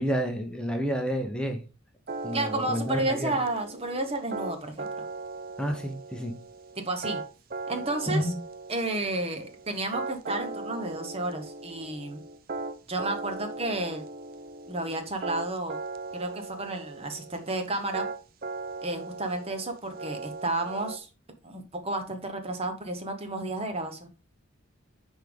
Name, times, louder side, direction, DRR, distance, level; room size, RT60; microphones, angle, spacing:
voice 1, 0.0-1.6 2.2-3.4 5.6-6.3 8.1-8.3, equal, 5° left, 3 dB, 0.8 m, -29 dB
sound 1, 2.1-21.0, right 3 dB, 45° right, 0.5 m, -38 dB
voice 2, 2.3-4.9 6.8-7.2 7.7-8.3 8.7-12.2 12.9-14.1 14.7-15.8 16.1-18.1 18.8-21.1 21.4-24.1, right 2 dB, 30° right, 6 dB, 0.9 m, -31 dB
9.8 x 3.6 x 3.4 m, 0.32 s
head